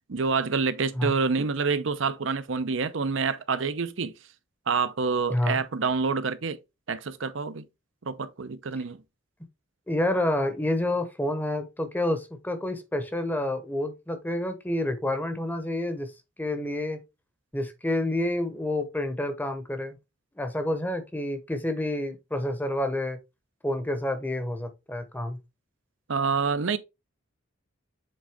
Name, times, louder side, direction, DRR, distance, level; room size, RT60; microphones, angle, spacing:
voice 1, 0.1-4.1 4.7-6.6 6.9-7.6 8.0-9.0 26.1-26.8, right 4 dB, 70° right, 0.7 m, -27 dB
voice 2, 5.3-5.6 9.9-16.1 16.4-17.0 17.5-20.0 20.4-23.2 23.6-25.4, left 1 dB, 10° left, 0.9 m, -28 dB
7.6 x 3.8 x 3.5 m
head